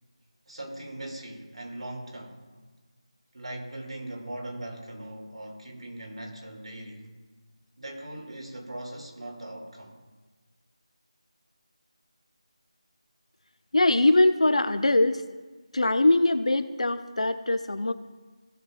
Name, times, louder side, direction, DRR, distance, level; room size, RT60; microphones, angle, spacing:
voice 1, 0.5-2.4 3.3-7.1 7.8-10.0, right 1 dB, 70° right, 1 dB, 2.6 m, -40 dB
voice 2, 13.7-15.2 15.7-17.9, left 2 dB, 75° left, 11 dB, 0.8 m, -22 dB
17.5 x 7.0 x 2.5 m, 1.3 s
figure-of-eight pair, 175°, 3 cm